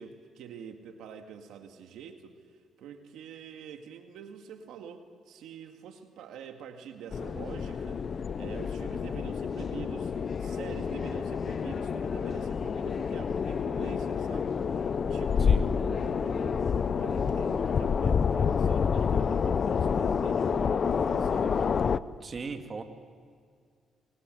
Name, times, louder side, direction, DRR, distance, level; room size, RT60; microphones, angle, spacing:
voice 1, 0.0-2.4 2.8-21.8, right 7 dB, 85° right, 5 dB, 2.1 m, -46 dB
sound 1, 7.1-22.0, left 6 dB, 50° left, 0.7 m, -28 dB
voice 2, 22.2-22.8, right 4 dB, 40° right, 5 dB, 2.3 m, -37 dB
27.5 x 23.5 x 7.9 m, 2.1 s
cardioid pair, 90°, 0 cm